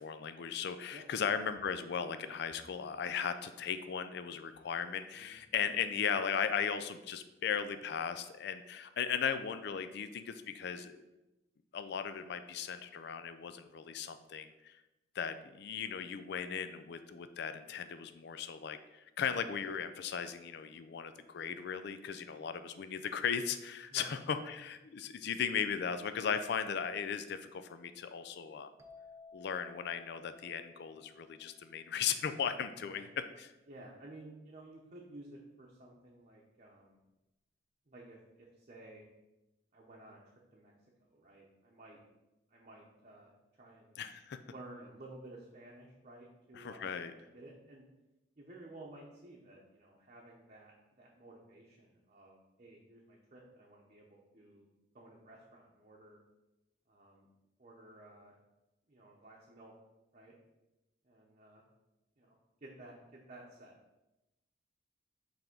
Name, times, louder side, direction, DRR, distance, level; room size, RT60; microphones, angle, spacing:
voice 1, 0.0-11.0 11.7-14.8 15.2-28.7 29.3-33.1 33.4-33.5 44.0-44.4 46.5-47.1, left 7 dB, 65° left, 10 dB, 0.4 m, -37 dB
voice 2, 23.9-24.4 32.8-33.0 33.7-37.0 37.9-39.1 39.7-40.7 41.1-42.0 42.5-43.3 43.6-44.0 44.5-47.8 48.4-54.7 54.9-56.2 56.9-57.3 57.6-58.4 58.9-59.7 60.1-60.3 61.0-61.6 62.2-63.7, right 2 dB, 40° right, -3 dB, 0.9 m, -54 dB
sound 1, 28.8-32.4, left 4 dB, 15° right, 0.5 m, -58 dB
5.8 x 3.5 x 5.3 m, 0.98 s
head